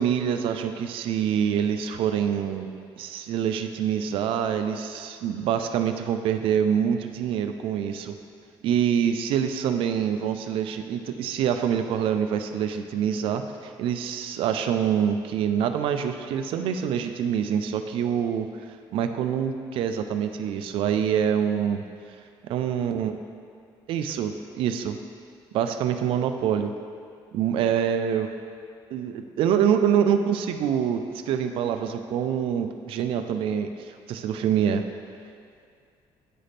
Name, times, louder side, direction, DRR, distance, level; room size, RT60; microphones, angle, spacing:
voice 1, 0.0-8.2 8.6-18.5 18.9-21.8 22.4-23.1 23.9-25.0 25.5-26.7 27.3-28.3 28.9-34.8, right 8 dB, 75° right, 7 dB, 0.4 m, -25 dB
9.9 x 4.1 x 3.3 m, 2.3 s
cardioid pair, 135°, 9 cm